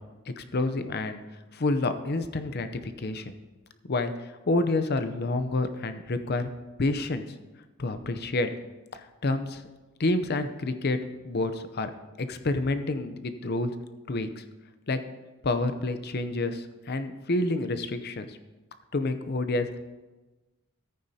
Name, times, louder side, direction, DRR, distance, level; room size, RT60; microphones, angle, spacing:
voice 1, 0.3-1.2 1.5-3.3 3.8-4.1 4.5-6.5 6.8-7.2 7.8-8.5 8.9-9.6 10.0-11.0 11.2-11.9 12.2-13.7 14.1-14.4 14.9-15.0 15.4-18.4 18.9-19.8, left 2 dB, 50° left, 10 dB, 0.6 m, -28 dB
14.0 x 9.2 x 2.8 m, 1.2 s
head